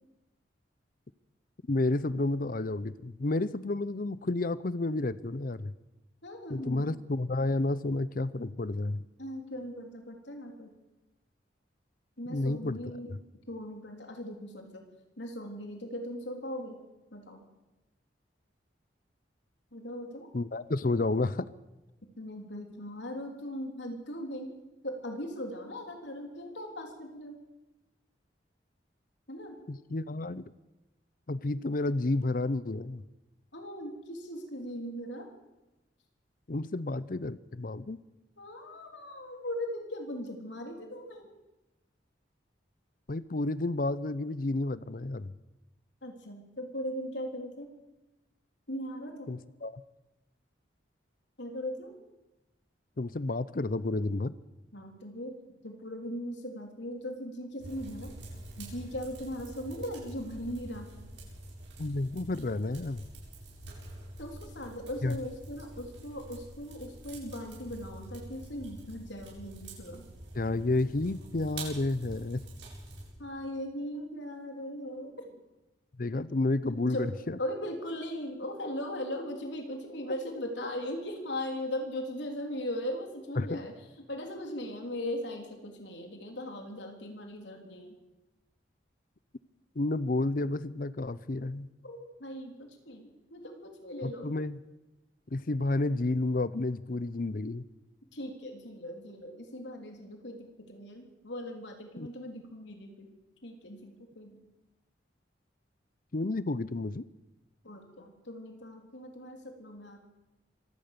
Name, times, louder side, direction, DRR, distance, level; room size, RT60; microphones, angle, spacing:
voice 1, 1.7-5.7 6.5-9.0 12.3-12.8 13.1-13.2 20.3-21.5 29.7-30.4 31.3-33.0 36.5-38.0 43.1-45.3 49.3-49.8 53.0-54.3 61.8-63.1 65.0-65.2 70.3-72.4 76.0-77.4 83.4-83.6 89.8-91.7 94.0-94.6 95.3-97.6 102.0-102.1 106.1-107.1, left 2 dB, 50° left, 17 dB, 0.6 m, -31 dB
voice 2, 6.2-6.9 9.2-10.7 12.2-13.1 13.5-14.8 15.2-16.9 17.1-17.4 19.7-20.3 22.2-24.5 24.8-27.4 29.3-29.6 33.5-35.3 38.4-41.3 46.0-47.7 48.7-49.3 51.4-52.0 54.7-55.3 55.6-58.1 58.6-60.9 64.2-70.1 73.2-75.4 76.7-83.7 84.1-88.0 91.8-94.3 98.1-103.1 103.4-104.4 107.6-110.0, left 1 dB, 75° left, 3 dB, 3.7 m, -39 dB
sound 1, 57.6-73.1, right 1 dB, 85° right, 8.0 m, -46 dB
25.0 x 16.5 x 6.9 m, 1.0 s
head